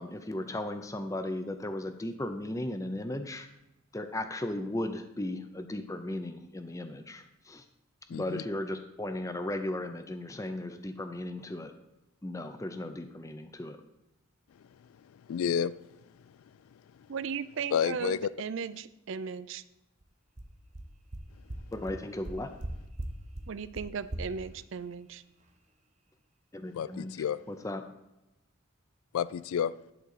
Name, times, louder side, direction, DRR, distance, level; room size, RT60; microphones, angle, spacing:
voice 1, 0.0-3.5 3.9-7.6 8.1-11.7 12.2-13.8 21.7-22.5 26.5-27.1 27.5-27.8, left 1 dB, 15° left, 0.5 m, -36 dB
voice 2, 8.1-8.4 15.1-15.7 17.7-18.3 26.7-27.4 29.1-29.7, left 8 dB, 80° left, 0.3 m, -30 dB
voice 3, 17.1-19.6 23.5-25.2, right 6 dB, 60° right, 0.4 m, -37 dB
sound 1, 20.0-20.1 20.4-20.5 20.7-20.8 21.1-21.2 21.5-21.6 21.9-22.0 22.2-22.7 23.0-23.1 23.3-23.4 23.7-23.8 24.1-24.2, right 1 dB, 35° right, 0.8 m, -37 dB
11.0 x 3.8 x 6.5 m
head